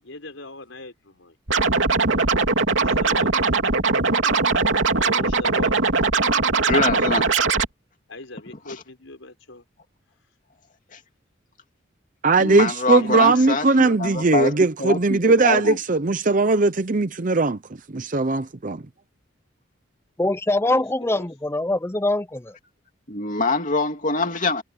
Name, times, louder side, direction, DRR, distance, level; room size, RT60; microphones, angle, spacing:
voice 1, 0.0-1.3 2.7-3.3 4.9-5.7 8.1-9.6 12.9-14.0 20.6-21.3, left 2 dB, 85° left, 4.8 m, -40 dB
Scratching (performance technique), 1.5-7.7, right 4 dB, 75° right, 3.1 m, -20 dB
voice 2, 6.7-7.3 8.7-8.8 10.9-11.0 12.4-13.6 14.0-15.8 23.1-24.6, left 3 dB, 40° left, 2.7 m, -24 dB
voice 3, 12.2-17.6 17.9-18.8, right 3 dB, 40° right, 0.7 m, -19 dB
voice 4, 20.2-22.6, left 2 dB, 15° left, 0.7 m, -23 dB
head